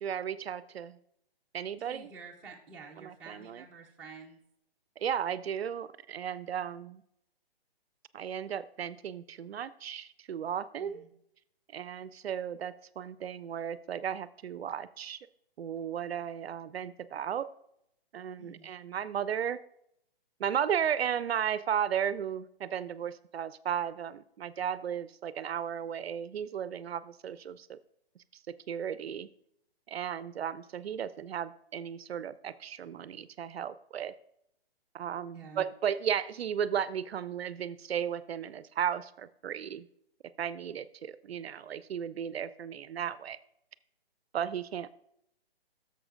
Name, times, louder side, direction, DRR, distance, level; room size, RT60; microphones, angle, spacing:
voice 1, 0.0-1.0 1.5-2.1 3.0-3.6 5.0-7.0 8.1-11.0 11.7-15.2 15.6-17.5 18.1-19.6 20.4-27.8 28.7-29.3 29.9-34.1 34.9-39.9 40.4-43.4 44.3-45.0, right 8 dB, 75° right, 15 dB, 0.5 m, -35 dB
voice 2, 1.8-4.4 10.8-11.1 18.4-18.7 35.3-35.6, right 5 dB, 5° right, -5 dB, 0.7 m, -49 dB
12.0 x 6.9 x 2.5 m, 0.76 s
hypercardioid pair, 150°, 31 cm